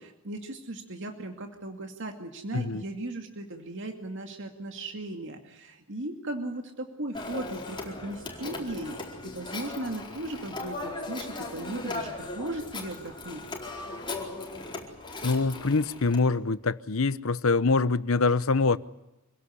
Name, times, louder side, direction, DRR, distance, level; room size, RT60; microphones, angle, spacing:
voice 1, 0.0-9.0 9.2-13.4, right 1 dB, 65° right, 2.5 m, -37 dB
Telephone, 7.1-16.2, left 2 dB, 25° left, 4.5 m, -38 dB
voice 2, 15.2-18.8, left 3 dB, 80° left, 0.9 m, -24 dB
27.0 x 17.0 x 9.7 m
head